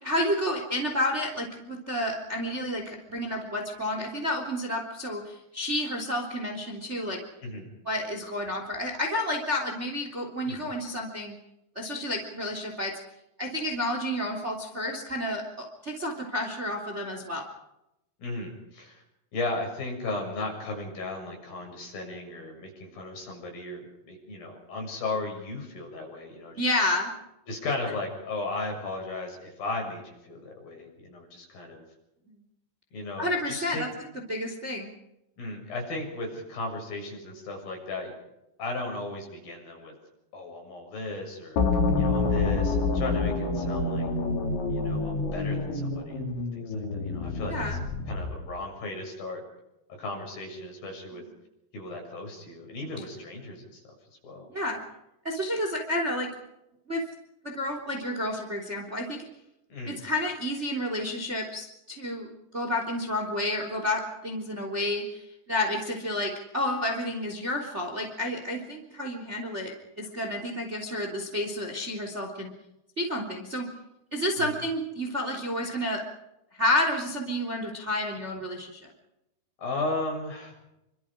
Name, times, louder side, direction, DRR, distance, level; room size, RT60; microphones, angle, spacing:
voice 1, 0.0-7.2 7.8-11.4 11.7-12.9 13.4-17.4 26.6-27.1 32.3-32.4 33.2-33.9 34.3-34.9 47.5-47.8 54.5-54.8 55.2-56.3 56.9-57.0 57.4-59.2 59.9-72.5 73.0-73.7 74.1-76.0 76.5-78.9, left 1 dB, 15° right, 3 dB, 3.2 m, -30 dB
voice 2, 7.4-7.7 10.4-10.7 18.2-19.0 19.3-26.8 27.5-31.8 32.9-33.9 35.4-38.1 38.6-39.9 40.3-41.6 42.0-44.1 44.7-49.4 49.9-51.2 51.7-53.8 54.2-54.5 59.7-60.0 74.4-74.5 79.6-80.5, left 2 dB, 55° left, 2 dB, 8.5 m, -36 dB
sound 1, 41.6-48.5, left 3 dB, 85° left, 6.2 m, -27 dB
28.5 x 25.5 x 5.0 m, 0.88 s
omnidirectional pair, 5.1 m